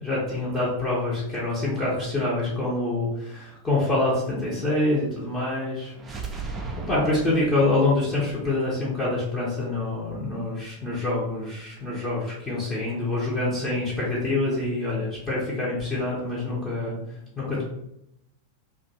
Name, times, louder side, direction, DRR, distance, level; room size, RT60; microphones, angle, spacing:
voice 1, 0.0-5.9 6.9-17.0 17.4-17.6, left 2 dB, 15° left, -8 dB, 0.8 m, -26 dB
sound 1, 5.9-9.8, right 4 dB, 15° right, 0.4 m, -37 dB
2.5 x 2.3 x 2.7 m, 0.81 s
figure-of-eight pair, 90°, 0 cm